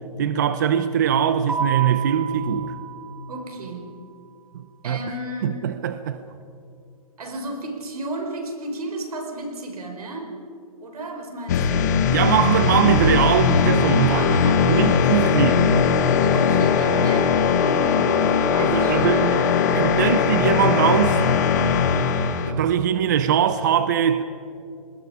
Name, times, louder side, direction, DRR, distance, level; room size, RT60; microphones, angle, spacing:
voice 1, 0.2-2.7 4.5-5.0 5.4-6.2 12.1-14.2 14.7-15.7 18.6-21.2 22.5-24.2, right 9 dB, 30° right, 0.6 m, -21 dB
Keyboard (musical), 1.5-4.0, right 7 dB, 5° right, 1.3 m, -31 dB
voice 2, 3.3-4.0 4.8-5.8 7.2-10.4 10.8-12.0 14.1-15.5 16.3-18.2 18.5-19.8, right 1 dB, 90° right, 4.7 m, -33 dB
sound 1, 11.5-22.5, left 6 dB, 30° left, 1.1 m, -19 dB
29.0 x 20.5 x 4.9 m
hypercardioid pair, 180°, 19 cm